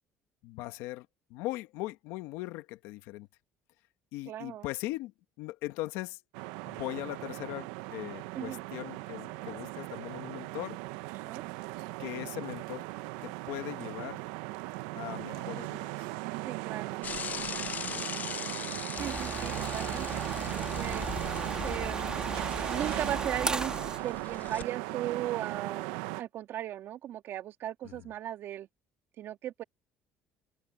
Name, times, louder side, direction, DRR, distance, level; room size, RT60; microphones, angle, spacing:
voice 1, 0.4-3.3 4.1-5.1 5.4-6.2 6.6-10.8 12.0-12.8 13.2-14.2 14.9-16.1 17.9-18.1 19.9-20.3 27.8-28.1, left 18 dB, 80° left, 1.5 m, -40 dB
voice 2, 4.3-4.7 8.3-8.6 11.2-11.4 16.5-17.0 19.0-21.1 21.6-23.7 24.0-28.7 29.2-29.6, right 12 dB, 60° right, 2.2 m, -37 dB
sound 1, 6.3-26.2, right 21 dB, 90° right, 0.8 m, -38 dB
Bicycle / Mechanisms, 17.0-24.6, left 7 dB, 40° left, 0.5 m, -41 dB
sound 2, 19.0-24.0, right 3 dB, 20° right, 1.9 m, -36 dB
open air
supercardioid pair, 85°, 4 cm